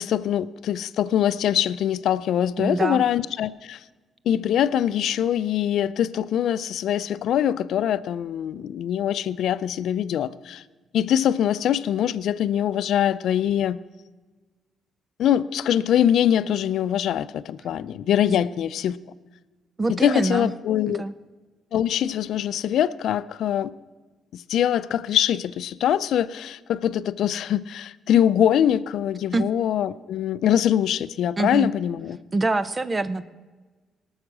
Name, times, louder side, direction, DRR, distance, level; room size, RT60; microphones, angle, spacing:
voice 1, 0.0-3.8 4.3-10.6 10.9-13.8 15.2-19.0 19.9-21.0 21.7-23.7 24.3-32.2, left 10 dB, 75° left, 17 dB, 0.4 m, -23 dB
voice 2, 2.6-3.0 18.3-18.4 19.8-20.5 20.9-21.1 29.3-29.4 31.4-31.7 32.3-33.3, right 3 dB, 25° right, 14 dB, 0.6 m, -25 dB
18.5 x 6.4 x 6.0 m, 1.3 s
cardioid pair, 90°, 0 cm